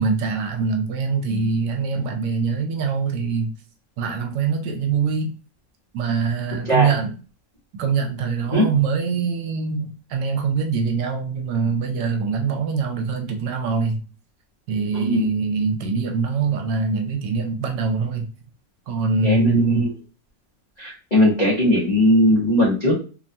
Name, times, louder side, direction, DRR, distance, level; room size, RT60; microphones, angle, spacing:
voice 1, 0.0-3.5 4.0-5.3 5.9-7.2 7.8-14.0 14.7-18.3 18.9-19.9, right 5 dB, 80° right, 1.3 m, -23 dB
voice 2, 14.9-15.3 19.2-19.9 20.8-22.9, left 1 dB, 75° left, 0.4 m, -19 dB
3.2 x 2.2 x 2.6 m
omnidirectional pair, 2.0 m